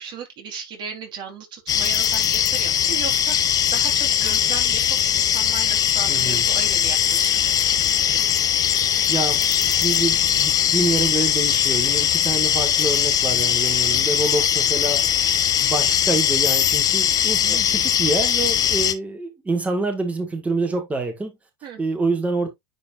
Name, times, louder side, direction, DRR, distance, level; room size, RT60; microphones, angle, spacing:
voice 1, 0.0-7.6 12.8-12.9 17.4-17.6 21.6-21.8, right 6 dB, 40° right, 3.6 m, -36 dB
sound 1, 1.7-18.9, left 9 dB, 30° left, 0.9 m, -20 dB
voice 2, 6.1-6.4 9.1-15.1 15.6-21.3 21.8-22.5, right 3 dB, 10° right, 1.8 m, -26 dB
9.9 x 4.2 x 2.5 m
supercardioid pair, 120°, 12 cm